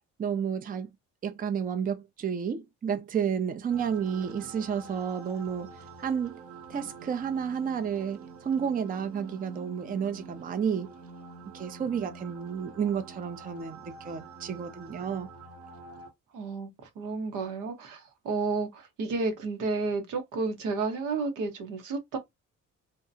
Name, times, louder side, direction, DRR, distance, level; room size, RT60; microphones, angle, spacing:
voice 1, 0.2-0.9 1.2-6.4 6.7-10.9 11.5-15.3, right 7 dB, 30° right, 0.5 m, -31 dB
sound 1, 3.7-16.1, right 4 dB, 50° right, 0.8 m, -47 dB
voice 2, 16.3-16.7 17.0-22.2, right 3 dB, 85° right, 1.0 m, -31 dB
2.8 x 2.2 x 2.5 m
cardioid pair, 90°, 30 cm